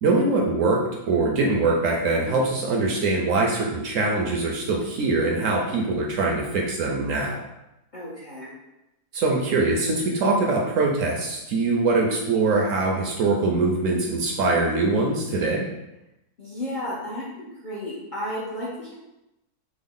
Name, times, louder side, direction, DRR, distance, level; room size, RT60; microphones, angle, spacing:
voice 1, 0.0-7.4 9.1-15.7, right 3 dB, 70° right, -1 dB, 0.8 m, -23 dB
voice 2, 7.9-8.5 16.4-18.9, left 1 dB, 50° left, -7 dB, 0.5 m, -33 dB
3.5 x 2.0 x 3.6 m, 0.90 s
omnidirectional pair, 1.6 m